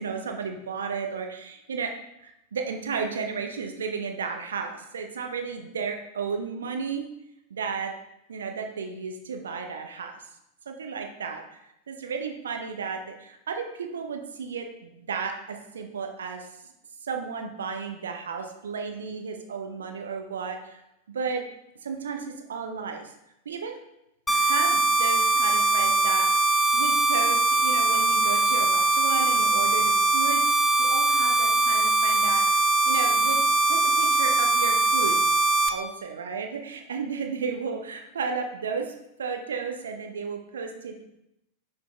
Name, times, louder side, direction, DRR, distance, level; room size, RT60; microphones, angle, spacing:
voice 1, 0.0-1.9 2.2-7.1 7.5-7.9 8.3-10.1 10.7-11.6 11.9-16.5 17.0-20.8 21.1-21.4 21.8-23.1 23.5-23.8 24.3-30.4 30.8-33.4 33.6-35.3 35.7-38.9 39.2-41.1, right 5 dB, 65° right, 4 dB, 0.7 m, -33 dB
sound 1, 24.3-35.7, right 3 dB, 10° left, 0.6 m, -22 dB
6.0 x 5.3 x 3.4 m, 0.85 s
figure-of-eight pair, 90°, 0 cm